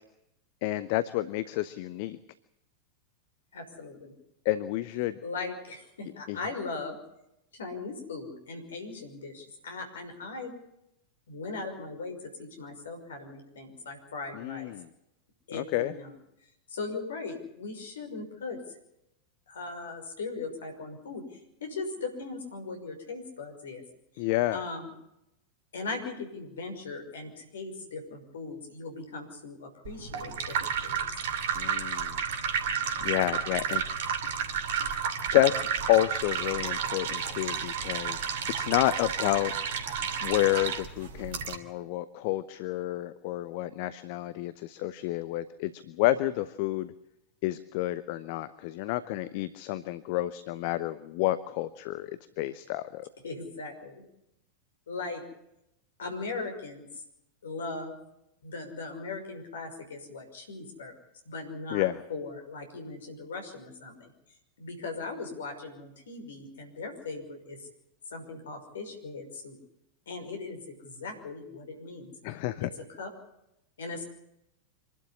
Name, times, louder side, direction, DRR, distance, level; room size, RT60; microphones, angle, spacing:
voice 1, 0.6-2.2 4.4-5.2 6.3-6.4 14.3-14.9 15.5-15.9 24.2-24.6 31.5-32.2 33.0-33.8 35.3-38.2 38.5-39.5 40.2-46.9 47.4-53.1 61.7-62.0 72.2-72.7, left 15 dB, 45° left, 15 dB, 0.9 m, -29 dB
voice 2, 3.5-4.1 5.2-7.0 7.5-10.5 11.3-14.7 15.5-16.1 16.7-18.8 19.5-23.8 24.1-24.2 24.5-24.9 25.7-31.0 53.2-54.0 54.9-55.2 56.0-56.8 57.4-57.9 58.4-60.9 61.3-64.1 64.6-67.7 68.1-69.6 70.1-72.1 72.6-73.1 73.8-74.0, left 3 dB, 65° left, 5 dB, 5.8 m, -39 dB
sound 1, 29.8-41.6, right 7 dB, 55° right, 2.6 m, -31 dB
26.5 x 12.5 x 9.9 m, 0.83 s
figure-of-eight pair, 90°, 0 cm